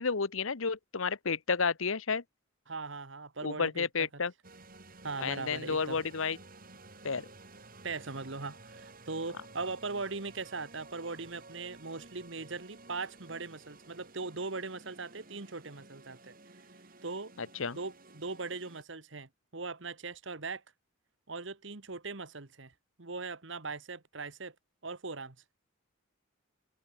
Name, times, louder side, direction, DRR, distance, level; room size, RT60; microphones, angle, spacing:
voice 1, 0.0-2.2 3.4-4.3 5.2-6.4 7.0-7.2 17.4-17.8, left 5 dB, 75° left, 1.0 m, -31 dB
voice 2, 2.7-4.1 5.0-6.0 7.8-16.3 17.0-17.3 17.7-20.6 21.3-22.7 23.0-24.5 24.8-25.3, right 3 dB, 60° right, 1.6 m, -40 dB
sound 1, 4.4-18.8, right 3 dB, 45° right, 4.5 m, -54 dB
open air
head